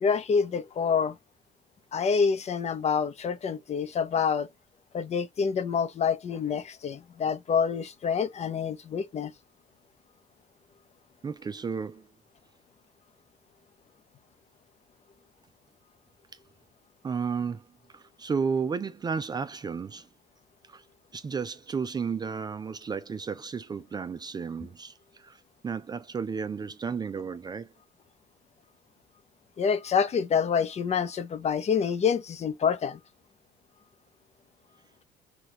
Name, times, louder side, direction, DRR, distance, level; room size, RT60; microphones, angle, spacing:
voice 1, 0.0-1.2 1.9-4.5 4.9-9.3 29.6-33.0, left 6 dB, 40° left, 0.7 m, -27 dB
voice 2, 11.2-12.1 17.0-17.6 17.9-20.1 20.7-20.8 21.1-27.7, right 5 dB, 25° right, 0.4 m, -33 dB
5.9 x 2.4 x 3.1 m
cardioid pair, 110°, 17 cm